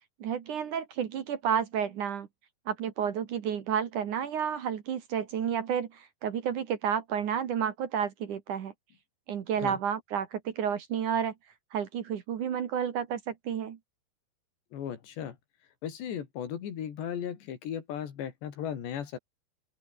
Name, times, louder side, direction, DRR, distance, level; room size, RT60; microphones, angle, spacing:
voice 1, 0.2-2.3 2.7-8.7 9.3-11.3 11.7-13.8, right 8 dB, 55° right, 2.7 m, -31 dB
voice 2, 14.7-15.4 15.8-19.2, left 9 dB, 85° left, 5.1 m, -36 dB
open air
omnidirectional pair, 4.9 m